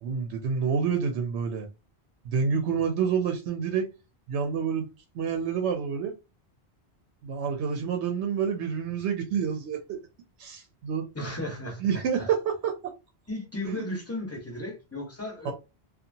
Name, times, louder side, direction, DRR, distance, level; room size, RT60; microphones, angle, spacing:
voice 1, 0.0-1.7 2.2-3.9 4.3-4.9 5.1-6.1 7.2-10.0 10.4-11.1 11.8-12.9 13.6-13.8 15.4-15.5, right 6 dB, 90° right, 0.9 m, -28 dB
voice 2, 11.1-11.8 12.2-12.3 13.3-15.5, left 1 dB, 15° left, 0.7 m, -35 dB
2.7 x 2.4 x 2.6 m
omnidirectional pair, 1.1 m